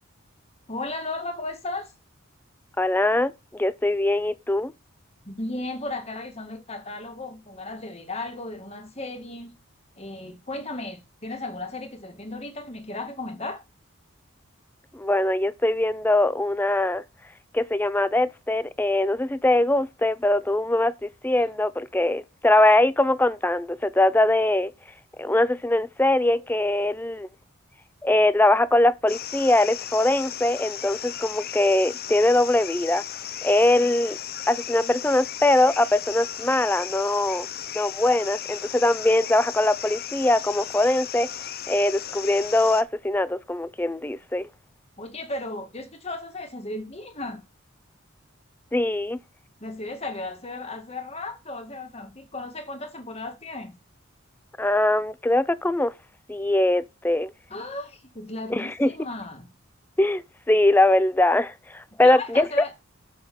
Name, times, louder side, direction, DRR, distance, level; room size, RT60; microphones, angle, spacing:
voice 1, 0.7-1.9 5.2-9.6 10.0-13.6 45.0-47.4 49.6-53.7 57.5-59.5 62.0-62.7, left 2 dB, 30° left, 1.7 m, -35 dB
voice 2, 2.8-4.7 14.9-17.0 17.5-24.7 25.2-27.3 28.0-33.0 33.4-34.2 34.5-37.5 37.7-41.3 41.7-44.5 48.7-49.2 54.6-55.9 56.3-57.3 58.5-58.9 60.0-62.5, left 1 dB, 10° left, 0.4 m, -22 dB
sound 1, 29.1-42.8, left 10 dB, 45° left, 0.7 m, -36 dB
7.2 x 5.9 x 6.8 m
head